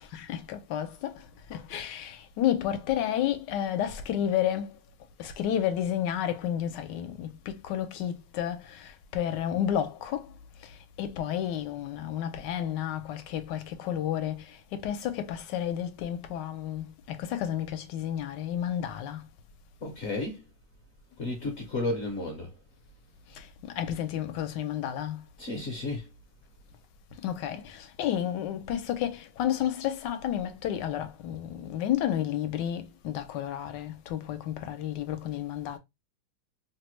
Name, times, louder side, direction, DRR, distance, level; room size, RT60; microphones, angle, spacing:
voice 1, 0.1-4.8 5.2-10.3 11.0-19.2 23.4-23.5 23.7-25.2 27.2-35.8, left 10 dB, 80° left, 1.2 m, -31 dB
voice 2, 19.8-20.4 21.2-22.5 25.4-26.0, left 2 dB, 55° left, 0.8 m, -32 dB
3.1 x 2.1 x 3.0 m
omnidirectional pair, 1.9 m